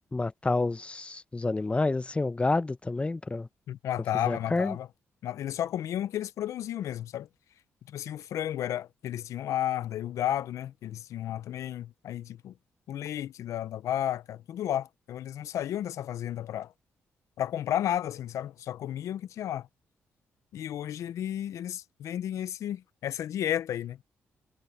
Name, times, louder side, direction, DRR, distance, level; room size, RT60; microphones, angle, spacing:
voice 1, 0.1-3.5 4.3-4.8, left 3 dB, 20° left, 0.8 m, -29 dB
voice 2, 3.7-4.9 5.2-7.3 7.9-12.5 12.9-16.7 17.4-19.7 20.5-24.0, left 11 dB, 80° left, 0.7 m, -33 dB
cardioid pair, 65°, 5 cm